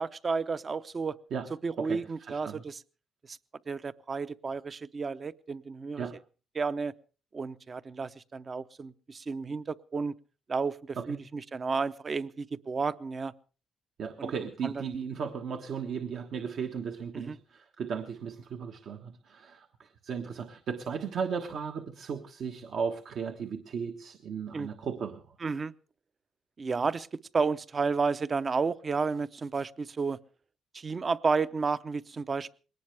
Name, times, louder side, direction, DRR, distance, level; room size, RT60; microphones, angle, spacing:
voice 1, 0.0-1.2 1.6-2.8 3.3-3.4 3.7-6.1 6.5-6.9 7.3-10.2 10.5-13.3 14.2-14.3 14.6-14.9 17.1-17.4 24.5-24.7 25.4-25.7 26.6-30.2 30.7-32.5, right 4 dB, 35° right, 15 dB, 0.7 m, -32 dB
voice 2, 1.8-2.6 6.0-6.2 11.0-11.2 14.0-25.2, right 6 dB, 65° right, 4 dB, 1.3 m, -36 dB
21.0 x 18.5 x 3.4 m, 0.37 s
cardioid pair, 90°, 0 cm